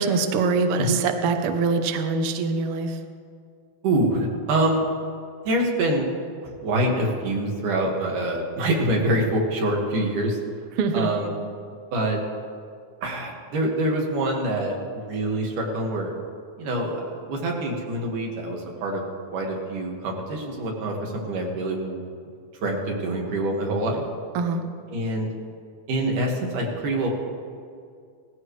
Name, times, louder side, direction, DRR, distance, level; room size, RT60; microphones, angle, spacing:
voice 1, 0.0-3.0 10.8-11.1 24.3-24.6, right 4 dB, 70° right, 6 dB, 1.4 m, -23 dB
voice 2, 3.8-4.9 5.5-6.1 6.4-10.4 10.9-11.3 11.9-12.2 13.0-16.1 16.6-19.0 19.3-22.0 22.6-24.0 24.9-25.3 25.9-27.1, right 1 dB, 85° right, -1 dB, 3.5 m, -25 dB
18.0 x 15.0 x 3.2 m, 2.2 s
omnidirectional pair, 3.6 m